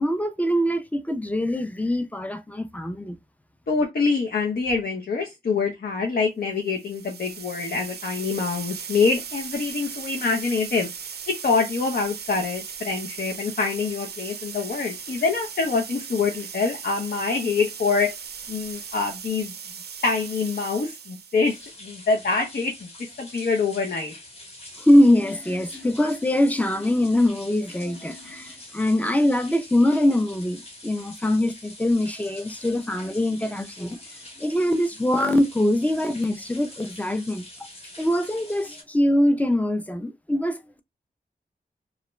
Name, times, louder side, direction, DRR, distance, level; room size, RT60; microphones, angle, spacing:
voice 1, 0.0-3.2 24.8-34.0 34.4-37.4 38.0-40.8, left 1 dB, 10° left, 0.4 m, -23 dB
voice 2, 3.7-10.9 11.3-18.1 18.5-19.5 20.0-22.7 23.0-24.1, left 4 dB, 65° left, 0.5 m, -25 dB
sound 1, 6.7-21.6, right 7 dB, 75° right, 0.4 m, -38 dB
sound 2, 21.4-38.8, left 1 dB, 40° left, 0.9 m, -45 dB
2.4 x 2.1 x 2.9 m
wide cardioid pair, 70°, 17 cm